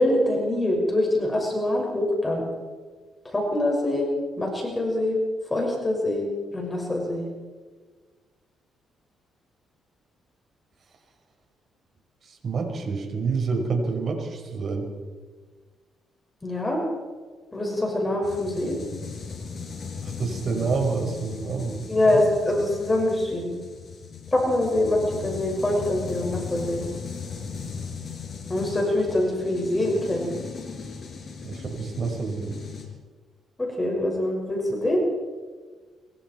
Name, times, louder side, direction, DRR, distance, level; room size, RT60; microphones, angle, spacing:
voice 1, 0.0-2.5 3.2-4.1 4.4-5.2 5.5-6.3 6.5-7.3 16.4-16.8 17.5-18.8 21.9-23.5 24.3-26.8 28.5-30.3 33.6-35.0, left 1 dB, 20° left, 0 dB, 6.3 m, -24 dB
voice 2, 12.2-14.9 20.0-21.8 22.0-22.2 31.4-32.6, right 4 dB, 50° right, 3 dB, 5.6 m, -28 dB
sound 1, 18.2-32.9, left 5 dB, 45° left, 6.3 m, -37 dB
25.5 x 23.0 x 4.7 m, 1.5 s
cardioid pair, 90°, 0 cm